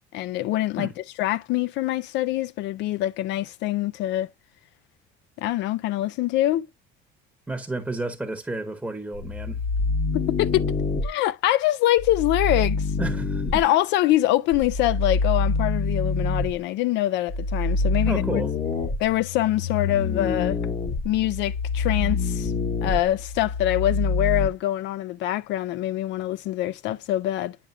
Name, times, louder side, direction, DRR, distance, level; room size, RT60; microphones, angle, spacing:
voice 1, 0.1-0.9 1.2-4.3 5.4-6.7 10.1-10.7 11.0-12.9 13.5-18.4 19.0-20.6 21.0-22.5 22.8-27.6, left 14 dB, 65° left, 0.5 m, -24 dB
voice 2, 7.5-9.6 13.0-13.6 18.1-18.5, right 2 dB, 5° right, 0.9 m, -31 dB
sound 1, 9.1-11.1 12.0-13.6 14.5-16.6 17.3-24.5, left 3 dB, 30° left, 0.9 m, -26 dB
9.3 x 4.8 x 2.6 m
cardioid pair, 135°, 20 cm